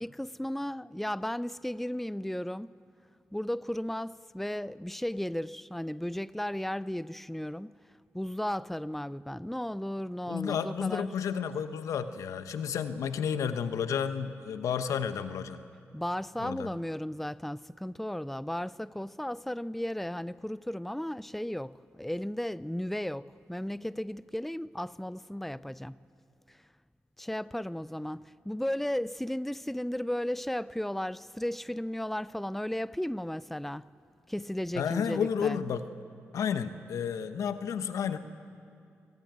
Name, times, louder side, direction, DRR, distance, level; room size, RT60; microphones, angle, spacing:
voice 1, 0.0-2.7 3.3-7.7 8.1-11.1 15.9-26.0 27.2-33.9 34.3-35.6, left 1 dB, 5° left, 0.5 m, -35 dB
voice 2, 10.3-15.6 16.4-16.7 34.8-35.8 36.3-38.2, left 7 dB, 85° left, 1.0 m, -31 dB
26.0 x 18.0 x 9.3 m
supercardioid pair, 45°, 5 cm